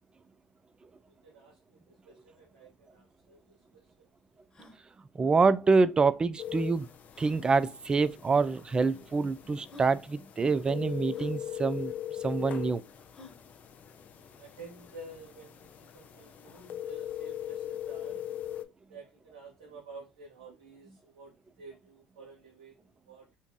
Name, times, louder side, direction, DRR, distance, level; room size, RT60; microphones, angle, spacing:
voice 1, 1.1-4.1 14.3-18.2 18.9-23.4, right 3 dB, 80° right, 0.9 m, -51 dB
sound 1, 2.9-3.0 3.2-3.3 3.8-3.9 4.4-4.8 6.1-6.2 7.1-7.4 8.4-8.5 9.2-9.3 9.7-10.0 11.1-11.4 13.1-13.4, left 1 dB, 25° left, 1.2 m, -51 dB
voice 2, 5.1-6.9 7.2-11.9 12.2-12.8, right 4 dB, 25° right, 0.3 m, -26 dB
sound 2, 6.4-18.6, left 11 dB, 50° left, 0.5 m, -41 dB
2.6 x 2.3 x 3.7 m
hypercardioid pair, 70°, 4 cm